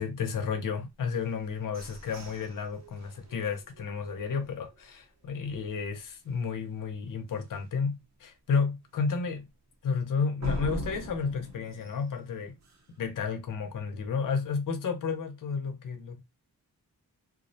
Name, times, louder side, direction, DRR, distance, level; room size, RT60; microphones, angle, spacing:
voice 1, 0.0-9.5 9.8-12.6 13.0-16.2, left 5 dB, 55° left, 0.6 m, -32 dB
sound 1, 1.1-5.0 5.5-5.6 5.9-6.3 6.7-6.8 7.3-7.4 10.4-13.1, right 1 dB, 45° right, 0.7 m, -42 dB
2.3 x 2.0 x 2.6 m
wide cardioid pair, 105°, 39 cm